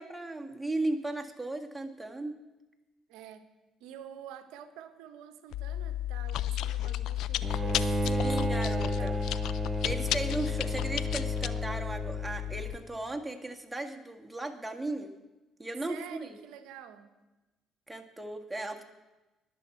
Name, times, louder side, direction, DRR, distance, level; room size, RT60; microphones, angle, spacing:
voice 1, 0.0-2.4 7.5-7.6 8.0-9.1 9.8-15.1 15.6-16.4 17.9-18.8, right 2 dB, 10° right, 3 dB, 1.8 m, -36 dB
voice 2, 3.1-3.4 3.8-9.3 15.9-17.1, right 10 dB, 75° right, 10 dB, 0.8 m, -48 dB
Chewing mastication, 5.5-12.8, left 13 dB, 70° left, 0.4 m, -32 dB
Bowed string instrument, 7.4-12.6, right 2 dB, 25° right, 0.7 m, -33 dB
20.5 x 7.0 x 4.5 m, 1.1 s
hypercardioid pair, 50°, 0 cm